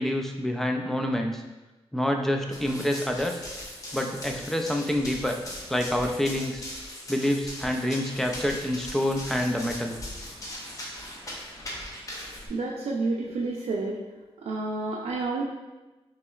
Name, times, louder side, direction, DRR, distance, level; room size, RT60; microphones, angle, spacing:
voice 1, 0.0-1.4 1.9-3.4 3.9-5.4 5.7-6.6 7.1-10.0, left 1 dB, 5° left, 3 dB, 0.3 m, -27 dB
Run, 2.5-12.5, left 1 dB, 35° left, 0.8 m, -39 dB
voice 2, 12.5-14.0 14.4-15.4, right 3 dB, 85° right, -2 dB, 0.4 m, -29 dB
5.8 x 3.0 x 2.4 m, 1.1 s
wide cardioid pair, 180°, 10 cm